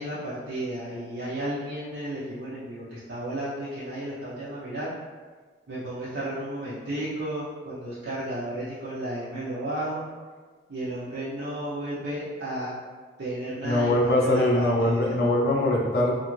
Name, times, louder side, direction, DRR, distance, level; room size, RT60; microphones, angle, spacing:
voice 1, 0.0-4.9 5.7-10.1 10.7-12.7 13.2-15.1, right 1 dB, 70° right, -9 dB, 0.5 m, -33 dB
voice 2, 13.6-16.1, left 1 dB, 55° left, -2 dB, 0.5 m, -22 dB
2.5 x 2.4 x 3.0 m, 1.4 s
head